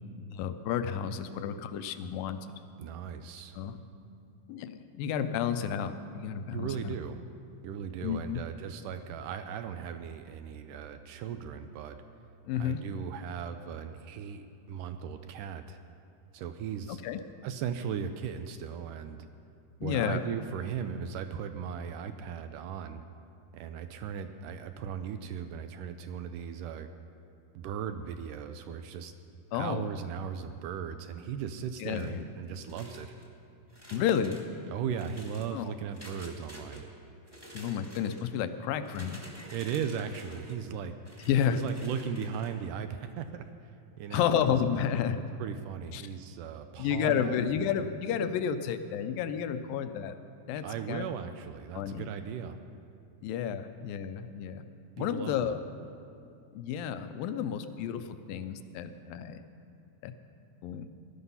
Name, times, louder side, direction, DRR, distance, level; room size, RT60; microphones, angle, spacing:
voice 1, 0.2-2.4 3.5-3.8 4.5-7.0 8.0-8.4 12.5-12.8 16.9-17.2 19.8-20.2 29.5-29.9 31.8-32.2 33.9-34.4 35.5-35.7 37.5-39.2 41.3-41.6 44.1-45.2 45.9-46.0 46.8-50.2 50.5-51.1 51.7-52.1 53.2-54.6 55.0-55.6 56.5-59.4 60.0-60.1 60.6-60.9, left 8 dB, 80° left, 10 dB, 2.4 m, -31 dB
voice 2, 2.8-3.6 6.5-7.2 7.6-12.0 12.6-15.8 16.3-17.0 17.4-19.3 19.8-23.0 23.5-26.9 27.6-29.1 29.5-33.2 34.7-36.9 39.5-41.0 41.5-43.5 44.0-44.6 45.4-47.5 50.6-52.6 55.0-55.6, right 8 dB, 80° right, 8 dB, 2.0 m, -37 dB
sound 1, 31.8-32.2 32.6-33.3 33.7-34.5 34.9-35.5 35.9-36.8 37.2-38.3 38.8-40.6 41.1-42.5, equal, 10° right, 1.3 m, -49 dB
19.0 x 12.0 x 5.5 m, 2.5 s
omnidirectional pair, 4.1 m